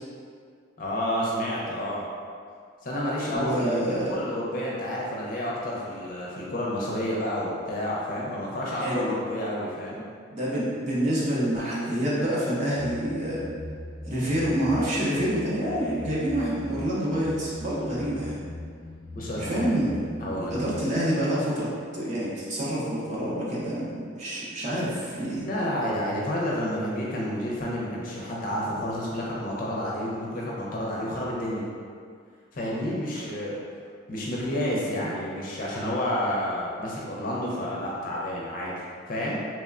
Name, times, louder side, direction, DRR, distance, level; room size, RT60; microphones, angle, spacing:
voice 1, 0.8-2.0 2.8-10.0 19.1-19.8 20.2-20.7 25.4-31.6 32.5-33.6 34.1-38.7 39.1-39.4, equal, 45° left, -5 dB, 0.4 m, -30 dB
voice 2, 3.3-4.2 8.7-9.1 10.3-13.4 14.0-18.4 19.4-20.0 20.5-25.5 35.0-35.1, right 1 dB, 35° right, -7 dB, 0.5 m, -27 dB
sound 1, 12.7-20.8, left 1 dB, 15° right, 0.9 m, -40 dB
3.0 x 2.1 x 2.4 m, 2.1 s
head